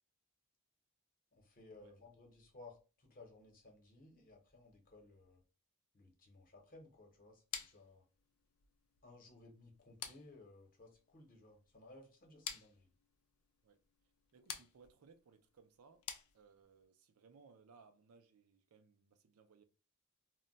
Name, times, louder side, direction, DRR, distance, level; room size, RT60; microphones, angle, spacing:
voice 1, 1.3-5.4 5.9-8.0 9.0-12.9, left 2 dB, 40° left, 0.8 m, -59 dB
sound 1, 7.5-16.9, left 8 dB, 70° left, 0.4 m, -51 dB
voice 2, 14.3-16.1 16.3-19.6, right 5 dB, 75° right, 0.4 m, -64 dB
2.2 x 2.1 x 3.8 m
head